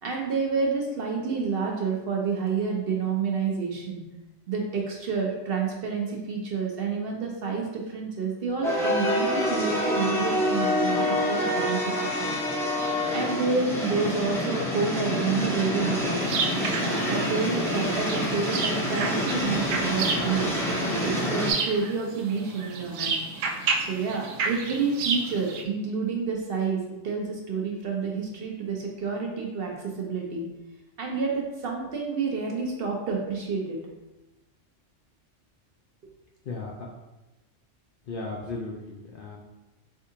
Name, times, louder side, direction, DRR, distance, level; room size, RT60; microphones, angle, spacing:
voice 1, 0.0-4.0 4.5-12.3 13.1-16.2 16.8-20.5 21.0-23.2 23.8-30.5 31.0-33.8, right 5 dB, 55° right, 0 dB, 0.8 m, -29 dB
sound 1, 8.6-21.5, left 1 dB, 5° left, 0.6 m, -27 dB
sound 2, 16.2-25.6, right 4 dB, 80° right, 0.9 m, -31 dB
voice 2, 36.4-36.9 38.1-39.4, left 3 dB, 60° left, -2 dB, 0.6 m, -36 dB
4.5 x 3.6 x 2.8 m, 1.0 s
omnidirectional pair, 1.3 m